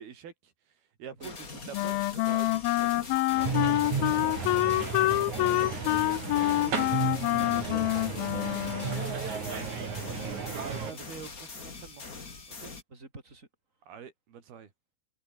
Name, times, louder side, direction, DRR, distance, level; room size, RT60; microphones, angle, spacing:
voice 1, 0.0-3.1 3.5-4.5 7.7-7.8 9.5-9.7 10.5-12.0 12.5-12.7 13.9-14.7, right 7 dB, 85° right, 5.1 m, -46 dB
sound 1, 1.2-12.8, left 4 dB, 25° left, 2.6 m, -43 dB
Wind instrument woodwind instrument, 1.7-9.1, left 17 dB, 80° left, 2.6 m, -27 dB
sound 2, 3.4-10.9, right 5 dB, 50° right, 5.3 m, -34 dB
voice 2, 4.9-6.9 7.2-9.5 10.1-11.0 12.9-13.5, right 2 dB, 20° right, 6.2 m, -48 dB
omnidirectional pair, 4.3 m